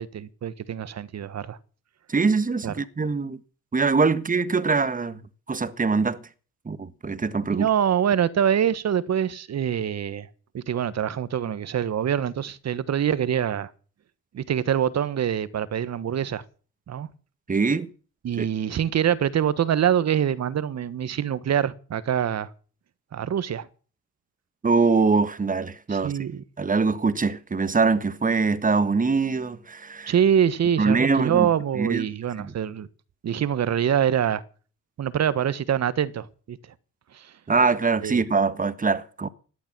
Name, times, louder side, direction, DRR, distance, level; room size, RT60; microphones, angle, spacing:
voice 1, 0.0-1.6 2.6-2.7 7.5-10.3 10.5-13.7 14.3-16.4 16.9-17.1 18.2-22.5 23.1-23.7 25.9-26.4 30.1-32.9 33.2-34.4 35.0-36.6 37.1-37.3 38.0-38.2, right 9 dB, 55° right, 1.4 m, -25 dB
voice 2, 2.1-3.4 3.7-5.2 5.5-6.2 6.6-7.7 17.5-17.9 18.4-18.5 24.6-26.1 26.6-30.1 30.8-31.5 31.7-32.0 32.4-32.5 37.5-39.3, right 4 dB, 25° right, 1.5 m, -23 dB
17.0 x 11.5 x 6.2 m
cardioid pair, 85°, 32 cm